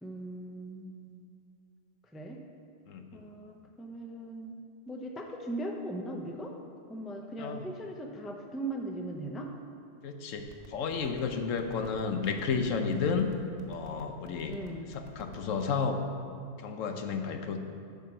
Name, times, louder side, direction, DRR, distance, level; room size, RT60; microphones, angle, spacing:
voice 1, 0.0-1.2 2.1-2.4 3.1-4.6 4.9-6.6 6.9-9.5 14.5-14.9, right 1 dB, ahead, 2 dB, 0.3 m, -39 dB
voice 2, 2.9-3.3 7.4-7.6 10.0-13.3 13.7-14.6 14.9-16.0 16.6-17.6, left 5 dB, 90° left, 6 dB, 1.1 m, -32 dB
sound 1, 10.4-15.8, right 1 dB, 35° right, 1.0 m, -51 dB
10.0 x 4.7 x 6.1 m, 2.4 s
omnidirectional pair, 1.3 m